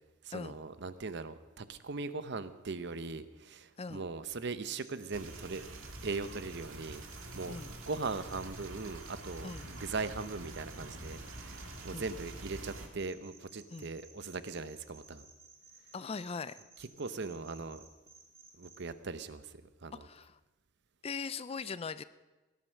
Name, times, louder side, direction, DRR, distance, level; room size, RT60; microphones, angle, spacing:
voice 1, 0.2-5.7 6.0-7.0 7.3-15.3 17.0-17.9 18.6-19.5 19.8-20.1, right 4 dB, 55° right, 13 dB, 0.8 m, -40 dB
sound 1, 4.8-18.8, right 4 dB, 15° right, 4.7 m, -58 dB
sound 2, 5.1-12.9, right 2 dB, 70° right, 2.1 m, -46 dB
voice 2, 15.9-16.6 20.0-20.4 21.0-22.0, left 5 dB, 30° left, 15 dB, 0.4 m, -40 dB
17.5 x 11.0 x 6.4 m, 1.1 s
head